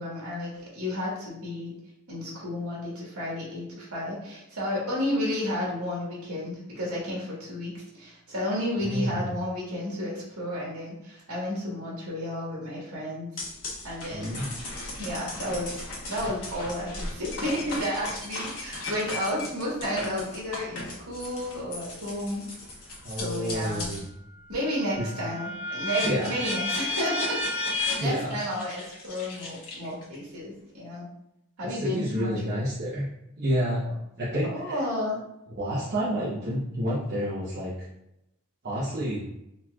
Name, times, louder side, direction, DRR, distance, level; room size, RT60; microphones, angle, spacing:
voice 1, 0.0-1.7 2.1-13.3 13.8-14.3 15.0-22.4 23.1-23.9 24.5-27.4 27.8-31.1 31.6-32.6 34.4-35.2, left 1 dB, 75° right, -5 dB, 1.4 m, -32 dB
voice 2, 8.7-9.2 14.1-14.5 23.0-24.0 25.0-25.1 26.0-26.3 27.9-28.4 31.6-33.0 33.4-33.8 34.2-34.8 35.6-37.9 38.6-39.2, equal, 45° right, -9 dB, 0.8 m, -29 dB
sound 1, 13.4-24.1 24.5-30.1, left 2 dB, 90° left, 1.2 m, -35 dB
4.0 x 2.9 x 2.3 m, 0.82 s
head